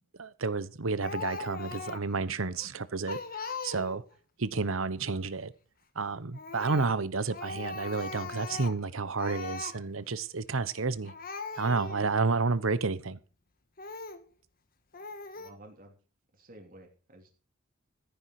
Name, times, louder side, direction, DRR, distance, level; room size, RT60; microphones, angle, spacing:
voice 1, 0.2-4.0 4.4-5.5 6.0-11.1 11.5-13.2, right 4 dB, 75° right, 15 dB, 1.0 m, -31 dB
Speech, 1.0-2.2 2.6-2.7 3.1-4.1 6.3-7.0 7.3-8.9 9.2-9.8 10.7-10.8 11.1-12.1 12.7-12.8 13.8-14.3 14.9-15.5, left 4 dB, 45° left, 1.5 m, -40 dB
voice 2, 15.3-15.9 16.3-17.3, right 1 dB, 45° right, 2 dB, 3.3 m, -52 dB
14.5 x 10.0 x 4.9 m, 0.35 s
head